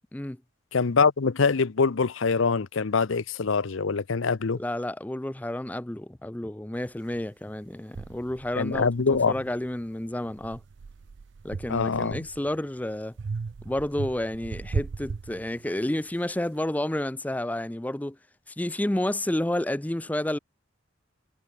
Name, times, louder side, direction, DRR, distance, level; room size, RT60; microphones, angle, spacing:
voice 1, 0.7-4.6 8.6-9.3 11.7-12.3, left 4 dB, 70° left, 0.7 m, -24 dB
voice 2, 4.6-10.6 11.4-13.1 13.6-18.2 18.5-20.4, left 1 dB, 5° left, 0.4 m, -30 dB
sound 1, 7.1-7.2 7.9-9.8 10.3-12.6 13.2-16.0, right 4 dB, 55° right, 0.4 m, -37 dB
head